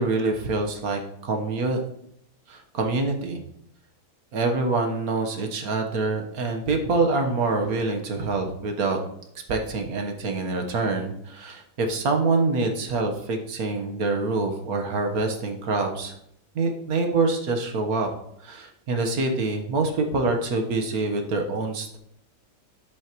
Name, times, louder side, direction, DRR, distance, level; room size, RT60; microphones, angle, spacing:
voice 1, 0.0-1.8 2.5-3.4 4.3-9.0 9.5-16.1 16.5-18.1 18.4-22.0, right 3 dB, 60° right, 4 dB, 1.7 m, -25 dB
10.5 x 8.2 x 3.1 m, 0.74 s
omnidirectional pair, 1.9 m